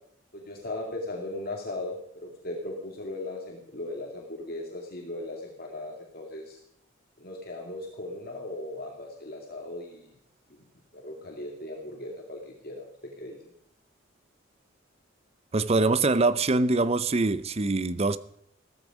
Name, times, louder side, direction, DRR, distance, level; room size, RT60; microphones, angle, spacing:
voice 1, 0.3-6.6 7.2-10.1 10.9-12.9 13.2-13.4, left 2 dB, 50° left, 2.5 m, -37 dB
voice 2, 15.5-18.2, right 3 dB, 30° right, 0.6 m, -24 dB
16.5 x 14.0 x 5.0 m
head